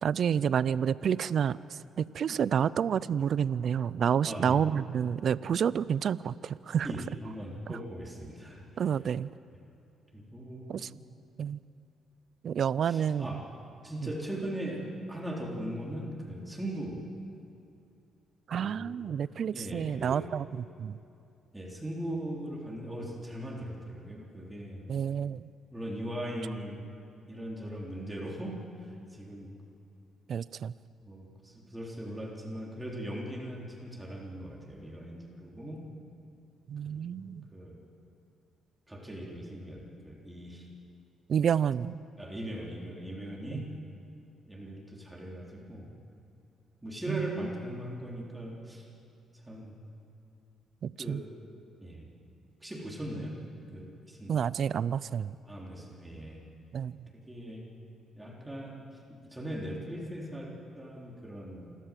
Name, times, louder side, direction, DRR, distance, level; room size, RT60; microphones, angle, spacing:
voice 1, 0.0-6.9 7.7-7.8 8.8-9.3 10.7-10.9 11.4-11.6 12.4-13.3 18.5-21.0 24.9-25.5 30.3-30.7 36.7-37.4 41.3-42.0 43.5-43.6 47.1-47.4 50.8-51.2 54.3-55.3 56.7-57.1, right 8 dB, 60° right, 19 dB, 0.4 m, -29 dB
voice 2, 4.3-4.6 6.8-8.8 10.1-11.0 12.8-13.4 13.8-17.0 18.6-19.1 19.5-20.3 21.5-24.8 25.7-26.9 27.3-29.5 31.0-35.8 36.9-37.8 38.9-40.7 42.2-43.7 44.5-45.9 46.8-48.9 49.3-49.8 51.0-51.3 51.8-52.1 52.6-53.4 53.7-54.4 55.5-56.5 57.1-57.7 58.1-61.8, right 1 dB, 10° right, -2 dB, 3.7 m, -40 dB
27.5 x 13.0 x 7.6 m, 2.7 s
cardioid pair, 90°, 0 cm